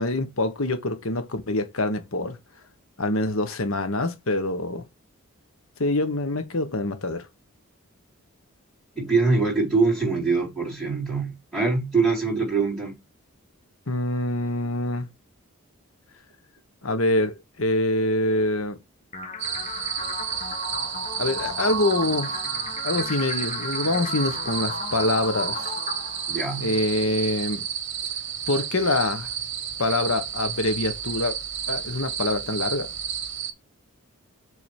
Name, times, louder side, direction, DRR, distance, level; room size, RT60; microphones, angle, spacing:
voice 1, 0.0-2.4 3.0-4.8 5.8-7.3 13.9-15.1 16.8-18.8 21.2-22.4 22.8-25.7 26.6-27.6 28.5-29.3 29.8-31.4 31.7-32.9, left 2 dB, 70° left, 1.4 m, -25 dB
voice 2, 9.0-13.0 26.3-26.8, right 4 dB, ahead, 4.5 m, -23 dB
sound 1, 19.1-27.1, left 2 dB, 30° left, 1.3 m, -34 dB
sound 2, 19.4-33.5, right 8 dB, 55° right, 1.2 m, -31 dB
7.5 x 3.9 x 4.9 m
head